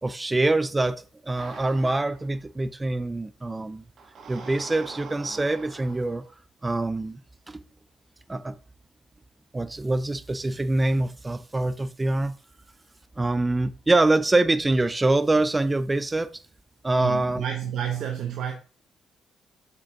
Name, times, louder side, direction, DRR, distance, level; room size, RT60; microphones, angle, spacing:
voice 1, 0.0-3.8 4.3-6.2 6.6-7.2 7.5-7.6 8.3-8.6 9.5-12.4 13.2-16.3 16.8-17.4, right 2 dB, 20° right, 0.6 m, -24 dB
sound 1, 1.4-2.3 4.0-6.4, right 4 dB, 55° right, 1.8 m, -44 dB
voice 2, 17.0-18.5, right 9 dB, 75° right, 1.1 m, -30 dB
7.3 x 6.7 x 3.7 m
cardioid pair, 90°, 0 cm